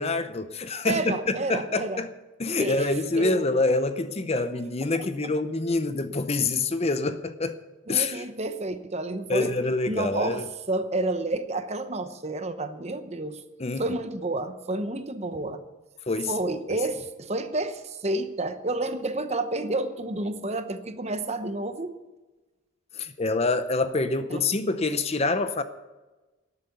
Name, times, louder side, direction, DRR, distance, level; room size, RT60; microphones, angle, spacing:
voice 1, 0.0-2.1 2.4-7.6 7.9-8.2 9.3-10.4 13.6-13.8 16.1-16.3 22.9-25.6, left 3 dB, 30° left, 0.6 m, -26 dB
voice 2, 0.8-2.0 2.6-2.9 3.2-3.6 5.2-5.3 7.9-9.5 9.9-13.4 13.8-15.6 16.3-21.9 24.3-24.4, right 2 dB, 30° right, 0.9 m, -30 dB
12.5 x 8.2 x 9.3 m
head